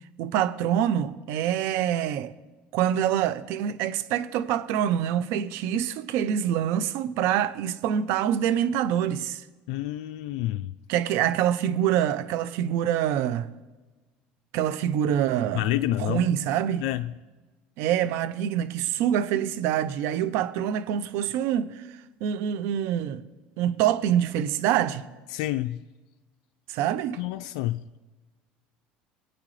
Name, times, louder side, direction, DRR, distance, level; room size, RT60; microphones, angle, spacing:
voice 1, 0.2-2.3 2.7-9.4 10.9-13.5 14.5-15.7 16.0-16.9 17.8-23.2 23.6-25.1 26.7-27.2, right 10 dB, 70° right, 0.7 m, -25 dB
voice 2, 9.7-10.7 15.5-16.2 16.8-17.1 25.3-25.8 27.2-27.8, left 15 dB, 80° left, 0.4 m, -28 dB
26.0 x 8.8 x 3.3 m
supercardioid pair, 100°, 4 cm